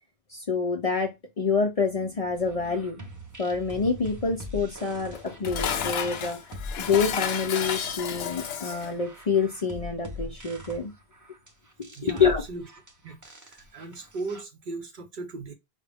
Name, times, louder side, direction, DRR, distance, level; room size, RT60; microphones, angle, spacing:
voice 1, 0.3-3.1 3.4-6.4 6.8-10.9 11.8-12.4, left 5 dB, 45° left, 0.5 m, -27 dB
sound 1, 2.5-14.4, left 1 dB, 20° right, 0.5 m, -42 dB
Dishes pots and pans, 5.1-9.0, left 8 dB, 75° left, 0.8 m, -31 dB
voice 2, 11.9-12.7 13.0-15.5, right 3 dB, 55° right, 0.7 m, -38 dB
5.0 x 2.1 x 3.4 m
omnidirectional pair, 1.1 m